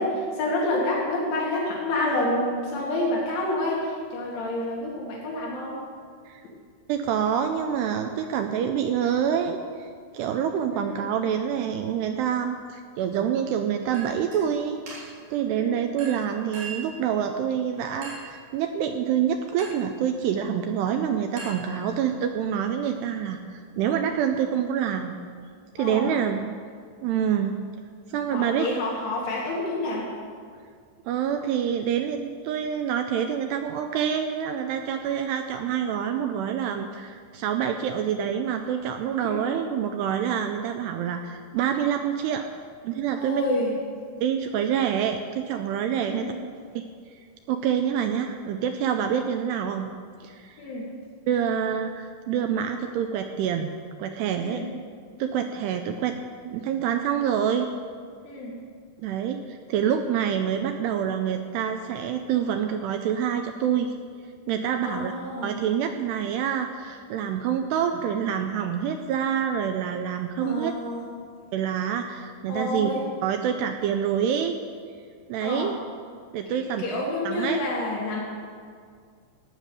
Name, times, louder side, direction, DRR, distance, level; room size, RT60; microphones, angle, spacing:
voice 1, 0.0-5.9 10.7-11.1 15.5-15.9 25.8-26.1 28.3-30.1 39.2-39.4 43.2-43.8 46.0-46.3 50.6-50.9 54.4-54.7 58.2-58.6 64.8-65.5 70.4-71.1 72.5-73.0 75.4-75.7 76.5-78.2, left 1 dB, 80° left, -4 dB, 4.4 m, -28 dB
voice 2, 6.9-25.2 25.8-26.5 27.0-27.6 28.1-28.7 31.1-42.5 42.8-43.4 44.2-46.3 46.8-46.9 47.5-49.9 50.2-50.6 51.3-54.6 55.2-56.2 56.4-57.7 59.0-63.9 64.5-65.1 65.4-70.7 71.5-72.9 73.2-74.6 75.3-75.8 76.3-76.8 77.3-77.6, right 8 dB, 85° right, 6 dB, 2.4 m, -27 dB
Chink clink, 13.9-14.4 14.9-15.3 16.0-17.0 18.0-18.4 19.6-19.9 21.4-22.2, right 3 dB, 45° right, 4.8 m, -40 dB
15.5 x 9.3 x 6.9 m, 2.1 s
omnidirectional pair, 5.4 m